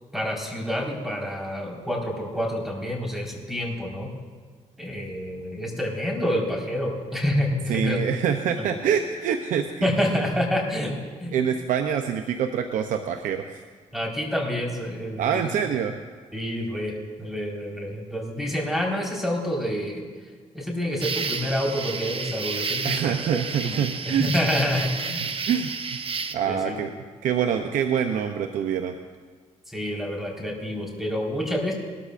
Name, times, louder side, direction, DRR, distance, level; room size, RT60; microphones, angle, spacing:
voice 1, 0.1-4.1 4.8-8.0 8.5-8.7 9.8-11.4 13.9-15.4 16.3-20.0 20.5-25.2 26.5-26.9 29.7-31.7, equal, 5° right, -1 dB, 4.4 m, -28 dB
voice 2, 7.7-9.9 11.3-13.5 15.2-15.9 22.8-24.3 25.2-26.0 26.3-26.9 27.2-28.9, right 8 dB, 90° right, 6 dB, 0.6 m, -25 dB
sound 1, 21.0-26.3, right 5 dB, 45° right, 0.9 m, -31 dB
20.5 x 13.0 x 2.5 m, 1.5 s
cardioid pair, 65°, 13 cm